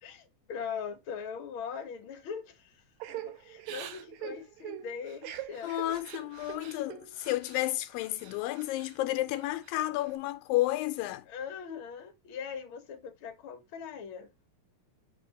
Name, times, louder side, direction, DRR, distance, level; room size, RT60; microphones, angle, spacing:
voice 1, 0.0-2.8 3.1-5.7 11.3-14.3, left 6 dB, 65° left, 1.3 m, -41 dB
Crying sobbing / Breathing, 3.0-7.6 8.0-9.0 9.4-10.1, right 13 dB, 80° right, 1.7 m, -44 dB
voice 2, 5.6-11.3, left 16 dB, 80° left, 2.2 m, -31 dB
6.9 x 3.5 x 4.1 m
omnidirectional pair, 4.2 m